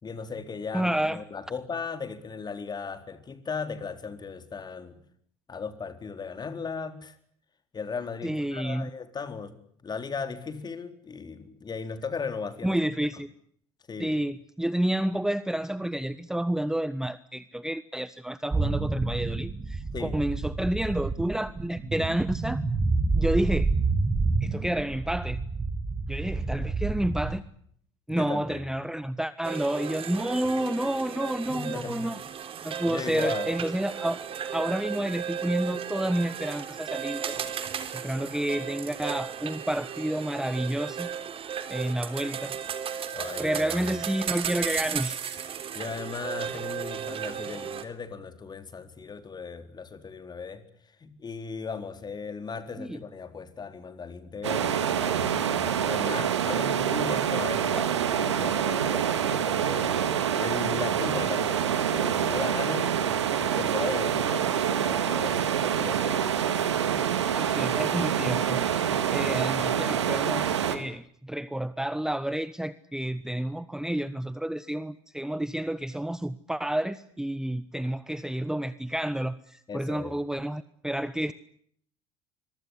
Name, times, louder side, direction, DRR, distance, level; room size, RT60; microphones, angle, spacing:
voice 1, 0.0-5.0 5.5-7.2 7.7-9.6 9.8-12.8 13.9-14.2 19.9-20.2 28.1-28.6 31.5-32.0 32.9-33.6 43.1-43.9 45.7-59.9 60.4-63.0 63.3-66.2 79.7-80.2, left 5 dB, 30° left, 9 dB, 4.1 m, -37 dB
voice 2, 0.7-1.2 8.2-8.9 12.6-13.3 14.0-22.6 23.1-23.7 24.4-25.4 26.1-27.4 28.1-32.2 32.6-34.2 34.5-37.3 37.6-41.1 41.7-42.6 43.4-45.4 52.8-53.0 57.8-57.9 67.3-81.3, right 1 dB, 5° right, 16 dB, 1.2 m, -30 dB
sound 1, 18.5-27.4, right 3 dB, 20° right, 2.8 m, -28 dB
sound 2, 29.4-47.8, right 8 dB, 40° right, 3.4 m, -35 dB
sound 3, 54.4-70.8, right 8 dB, 80° right, 2.3 m, -26 dB
25.5 x 23.0 x 8.4 m, 0.65 s
figure-of-eight pair, 60°, 14 cm